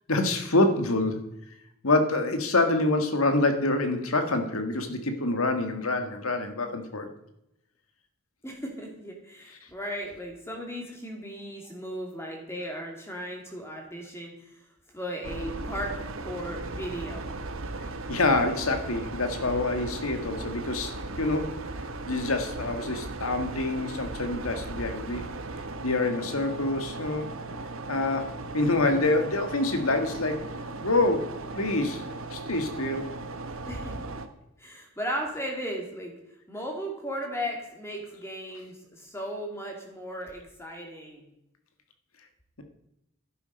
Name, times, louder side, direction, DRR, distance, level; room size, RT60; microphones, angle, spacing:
voice 1, 0.1-1.3 1.8-7.1 18.1-21.7 22.1-25.3 25.8-27.3 27.9-30.5 30.8-32.0 32.3-33.0, left 2 dB, 85° left, 6 dB, 1.7 m, -26 dB
voice 2, 8.4-14.5 14.9-17.3 33.4-34.1 34.6-36.1 36.5-41.2, equal, 10° left, 1 dB, 2.6 m, -36 dB
sound 1, 15.2-34.3, right 2 dB, 75° right, 1.1 m, -37 dB
12.0 x 10.5 x 5.3 m, 0.84 s
head